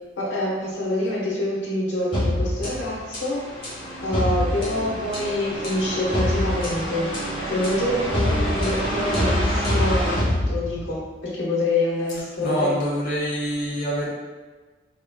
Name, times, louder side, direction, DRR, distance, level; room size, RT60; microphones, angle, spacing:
voice 1, 0.2-3.4 4.0-7.1 7.5-12.8, left 1 dB, 80° left, -5 dB, 1.1 m, -26 dB
sound 1, 2.1-11.1, equal, 25° left, 1.4 m, -25 dB
voice 2, 12.4-14.1, equal, 45° left, -7 dB, 0.8 m, -25 dB
4.2 x 3.6 x 2.3 m, 1.3 s
head